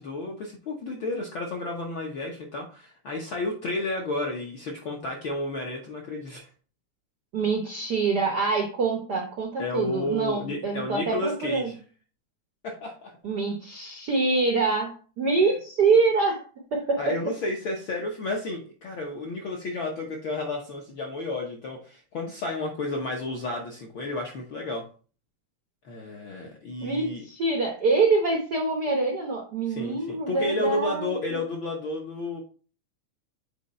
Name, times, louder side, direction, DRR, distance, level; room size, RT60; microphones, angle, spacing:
voice 1, 0.0-6.5 9.6-11.7 12.6-13.2 17.0-24.8 25.8-27.2 29.7-32.4, left 2 dB, 70° left, 0 dB, 1.2 m, -32 dB
voice 2, 7.3-11.7 13.2-16.4 16.7-17.1 26.8-31.4, right 4 dB, 85° right, 2 dB, 0.9 m, -25 dB
8.2 x 3.9 x 4.2 m, 0.39 s
omnidirectional pair, 3.5 m